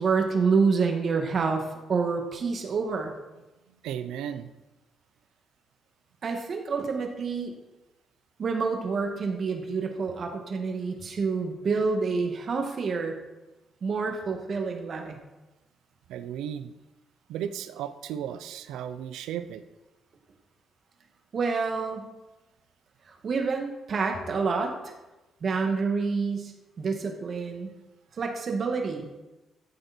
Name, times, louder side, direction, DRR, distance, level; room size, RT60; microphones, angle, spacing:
voice 1, 0.0-3.1 6.2-7.5 8.4-13.2 13.8-15.2 21.3-22.1 23.1-24.9 25.4-26.5 26.8-27.7 28.2-29.1, right 4 dB, 50° right, 3 dB, 2.2 m, -28 dB
voice 2, 3.7-4.5 16.1-16.7 17.3-19.6, right 9 dB, 90° right, 12 dB, 0.7 m, -35 dB
14.0 x 8.2 x 4.5 m, 1.1 s
cardioid pair, 90°, 0 cm